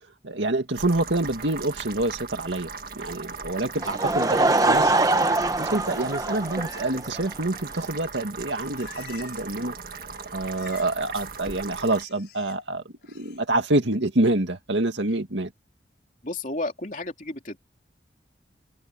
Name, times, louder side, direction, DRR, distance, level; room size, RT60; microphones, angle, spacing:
voice 1, 0.2-4.9 5.6-9.8 10.3-15.5, right 2 dB, 85° right, 2.2 m, -27 dB
sound 1, 0.7-12.0, right 5 dB, 50° right, 1.8 m, -38 dB
Laughter / Crowd, 3.8-7.3, right 2 dB, 20° right, 1.1 m, -23 dB
Livestock farm animals working animals, 8.2-9.7 9.9-11.0 11.3-12.6 13.0-13.4, left 7 dB, 65° left, 6.0 m, -49 dB
voice 2, 16.2-17.6, left 2 dB, 45° left, 3.2 m, -32 dB
head